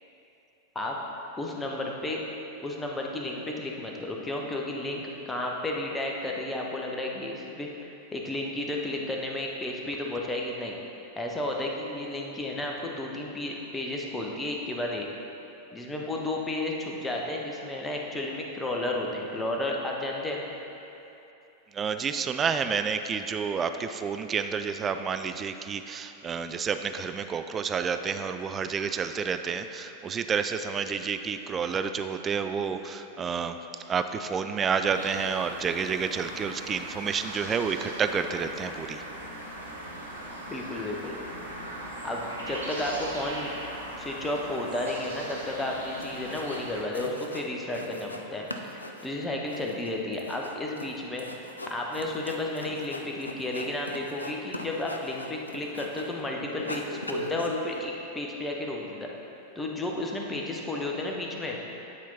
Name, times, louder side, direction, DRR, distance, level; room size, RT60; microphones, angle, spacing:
voice 1, 1.4-2.2 2.6-10.8 11.2-15.1 15.7-20.4 40.5-41.2 42.0-43.5 44.0-48.5 48.7-51.2 51.7-59.1 59.5-61.6, left 1 dB, 10° left, -1 dB, 0.9 m, -32 dB
voice 2, 21.7-33.6 33.9-39.0, right 6 dB, 20° right, 8 dB, 0.3 m, -29 dB
sound 1, 34.8-46.8, right 1 dB, 75° right, 1.1 m, -39 dB
sound 2, 46.0-46.7 46.9-48.2 48.5-56.2 56.5-57.8, left 1 dB, 80° left, 0.4 m, -40 dB
9.3 x 4.4 x 4.1 m, 2.9 s
figure-of-eight pair, 90°, 0 cm